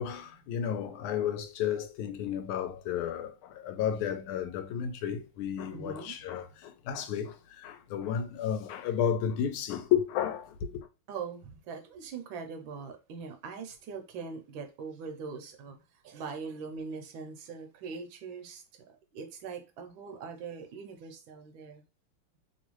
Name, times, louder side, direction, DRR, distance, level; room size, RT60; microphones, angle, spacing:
voice 1, 0.0-10.7, left 9 dB, 85° left, 1.5 m, -32 dB
voice 2, 5.7-6.1 11.1-15.8 16.0-18.6 19.1-21.8, right 5 dB, 75° right, 1.3 m, -41 dB
3.1 x 3.0 x 3.0 m
omnidirectional pair, 2.3 m